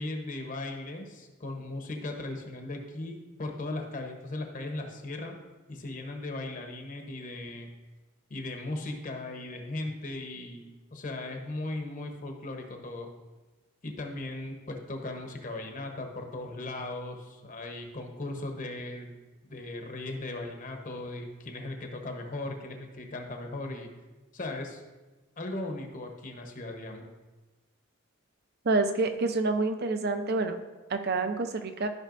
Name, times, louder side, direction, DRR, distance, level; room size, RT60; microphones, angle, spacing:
voice 1, 0.0-5.4 5.7-7.7 8.3-13.1 13.8-19.1 19.4-23.9 24.3-24.8 25.4-27.0, left 2 dB, 40° left, 3 dB, 0.9 m, -37 dB
voice 2, 28.6-30.6 30.9-31.9, right 3 dB, 50° right, 8 dB, 0.6 m, -27 dB
13.5 x 5.4 x 2.5 m, 1.2 s
head